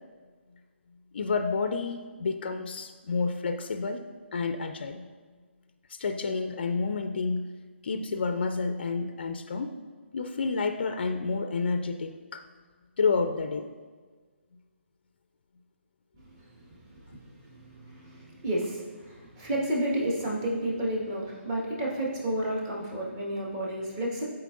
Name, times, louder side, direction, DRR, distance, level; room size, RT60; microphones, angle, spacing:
voice 1, 1.1-4.0 4.3-5.1 5.9-7.4 7.8-9.7 10.1-12.5 13.0-13.7, left 4 dB, 55° left, 7 dB, 0.4 m, -29 dB
voice 2, 16.2-24.2, right 1 dB, 25° right, -4 dB, 1.5 m, -32 dB
12.0 x 4.5 x 2.5 m, 1.5 s
figure-of-eight pair, 140°, 7 cm